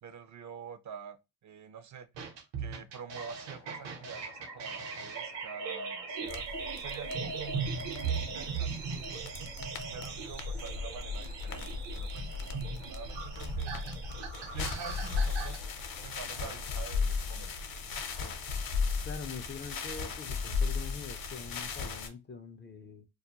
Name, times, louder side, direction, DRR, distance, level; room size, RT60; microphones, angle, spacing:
voice 1, 0.0-1.2 1.4-2.1 2.6-9.5 9.9-13.7 14.4-15.6 16.0-17.5, right 7 dB, 40° right, 0.4 m, -47 dB
sound 1, 2.2-15.6, right 5 dB, 70° right, 0.8 m, -38 dB
sound 2, 3.1-16.9, left 6 dB, 85° left, 0.7 m, -57 dB
sound 3, 6.3-22.1, left 5 dB, 50° left, 0.7 m, -36 dB
voice 2, 19.0-23.1, left 5 dB, 25° left, 0.4 m, -44 dB
2.3 x 2.2 x 2.8 m
cardioid pair, 75°, 44 cm